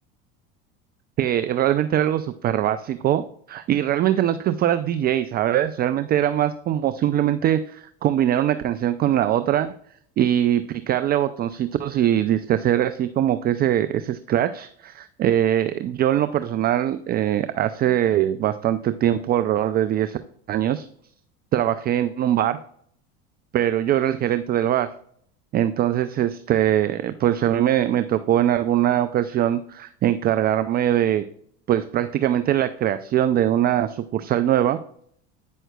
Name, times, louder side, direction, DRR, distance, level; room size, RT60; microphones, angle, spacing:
voice 1, 1.2-3.2 3.5-9.7 10.2-20.2 20.5-20.9 21.5-22.6 23.5-24.9 25.5-31.2 31.7-34.8, right 11 dB, 30° right, 11 dB, 0.4 m, -22 dB
9.0 x 6.3 x 2.3 m, 0.63 s
supercardioid pair, 100°, 30 cm